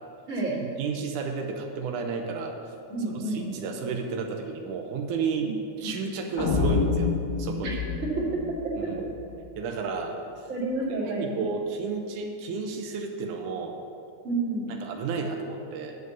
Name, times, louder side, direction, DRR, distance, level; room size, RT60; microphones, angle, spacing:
voice 1, 0.3-0.6 2.9-3.5 5.4-5.5 5.8-5.9 8.2-8.3 10.5-11.4 14.2-14.8, right 2 dB, 30° right, -6 dB, 2.1 m, -29 dB
voice 2, 0.8-2.6 3.1-5.5 5.8-7.1 7.4-7.8 8.8-9.0 9.6-10.1 11.0-13.8 14.8-16.0, right 5 dB, 90° right, 3 dB, 2.3 m, -32 dB
sound 1, 6.4-9.5, left 5 dB, 50° left, 1.7 m, -28 dB
9.2 x 5.2 x 7.9 m, 2.5 s
omnidirectional pair, 3.4 m